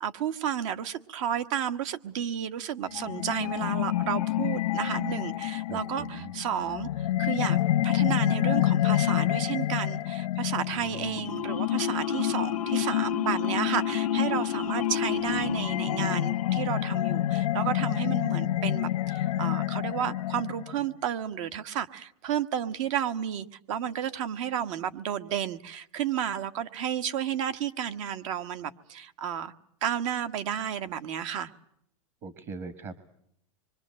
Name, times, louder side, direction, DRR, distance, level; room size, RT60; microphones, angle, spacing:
voice 1, 0.0-29.5 29.8-31.5, right 9 dB, 60° right, 1.5 m, -32 dB
sound 1, 2.9-20.8, left 13 dB, 85° left, 0.9 m, -28 dB
voice 2, 5.7-6.3 32.2-33.0, right 4 dB, 35° right, 1.5 m, -40 dB
26.0 x 24.0 x 7.6 m
supercardioid pair, 150°, 18 cm